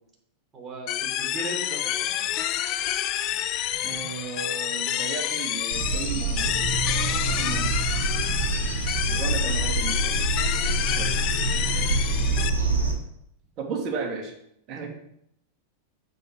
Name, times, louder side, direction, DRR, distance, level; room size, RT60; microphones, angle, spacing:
voice 1, 0.5-2.1 7.0-7.6 8.5-8.9 10.5-11.1, right 1 dB, 20° right, -1 dB, 3.1 m, -40 dB
sound 1, 0.9-12.5, left 12 dB, 40° left, 0.5 m, -28 dB
voice 2, 3.8-6.6 7.4-7.7 9.1-10.0 11.0-11.1 13.6-14.3 14.7-14.9, right 5 dB, 35° right, 0 dB, 2.5 m, -34 dB
sound 2, 5.7-12.9, right 3 dB, 75° right, 1.7 m, -26 dB
8.1 x 7.1 x 4.6 m, 0.72 s
figure-of-eight pair, 90°, 0 cm